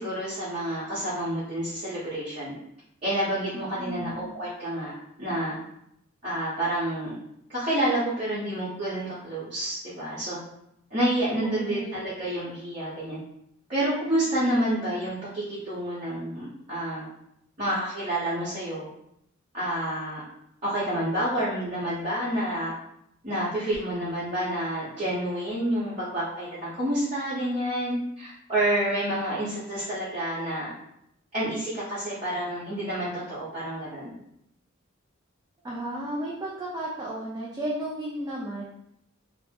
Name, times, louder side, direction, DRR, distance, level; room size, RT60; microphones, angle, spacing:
voice 1, 0.0-2.5 3.0-5.6 6.2-7.1 7.5-10.4 10.9-13.2 13.7-17.0 17.6-18.9 19.5-20.2 20.6-22.7 23.2-30.7 31.3-34.2, right 1 dB, 35° right, -12 dB, 0.9 m, -29 dB
voice 2, 3.5-4.3 11.3-12.0 24.3-24.7 35.6-38.6, right 1 dB, 20° right, -5 dB, 0.3 m, -34 dB
2.6 x 2.1 x 3.3 m, 0.76 s
head